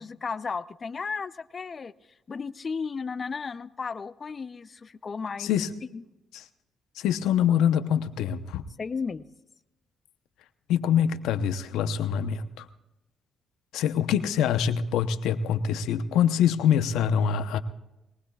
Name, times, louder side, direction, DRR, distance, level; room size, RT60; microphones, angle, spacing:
voice 1, 0.0-1.9 2.3-5.5 5.9-6.0 8.8-9.3, left 5 dB, 40° left, 15 dB, 0.5 m, -34 dB
voice 2, 5.4-5.7 6.3-6.4 6.9-8.6 10.7-12.7 13.7-17.6, left 8 dB, 90° left, 11 dB, 0.8 m, -25 dB
21.5 x 19.5 x 2.4 m, 0.98 s
cardioid pair, 90°, 0 cm